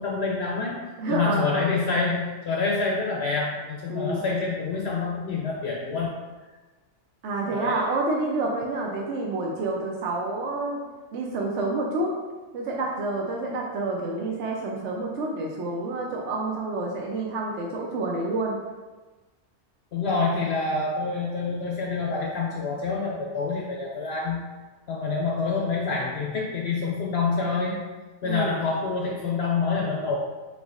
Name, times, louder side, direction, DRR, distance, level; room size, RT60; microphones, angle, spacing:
voice 1, 0.0-0.8 1.1-6.1 7.5-7.8 19.9-24.5 24.9-27.8 28.2-30.2, left 4 dB, 60° left, -2 dB, 0.7 m, -27 dB
voice 2, 1.0-1.7 3.9-4.2 7.2-10.8 11.1-12.2 12.5-18.6 28.2-28.6, right 2 dB, 70° right, -1 dB, 0.9 m, -28 dB
4.5 x 3.9 x 2.4 m, 1.2 s
omnidirectional pair, 1.4 m